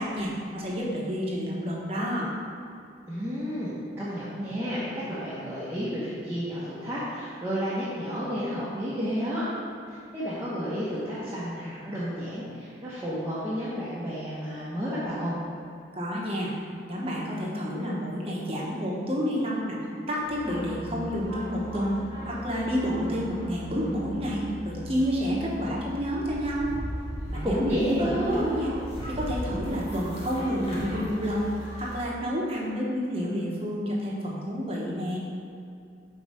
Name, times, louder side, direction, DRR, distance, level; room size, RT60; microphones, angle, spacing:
voice 1, 0.0-2.3 16.0-16.5 16.8-19.8 20.1-26.7 27.3-28.7 29.1-31.5 31.8-35.2, equal, 30° right, -4 dB, 1.0 m, -29 dB
voice 2, 3.1-9.5 9.9-15.3 27.4-28.5, equal, 15° right, -11 dB, 0.9 m, -31 dB
sound 1, 20.2-32.0, equal, 35° left, 1.5 m, -38 dB
4.8 x 4.6 x 5.5 m, 2.5 s
head